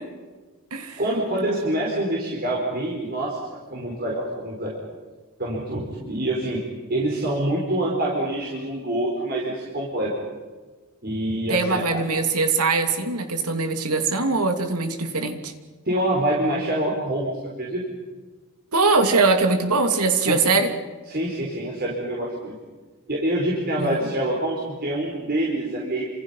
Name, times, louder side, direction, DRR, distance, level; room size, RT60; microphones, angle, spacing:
voice 1, 1.0-4.8 5.4-6.6 6.9-10.1 11.0-12.0 15.8-17.3 17.6-17.8 20.3-20.4 21.1-22.5 23.1-26.0, right 1 dB, 45° right, -3 dB, 4.7 m, -26 dB
voice 2, 11.5-15.5 18.7-20.7 23.8-24.0, right 3 dB, 90° right, 6 dB, 2.8 m, -22 dB
29.5 x 27.0 x 5.8 m, 1.3 s
head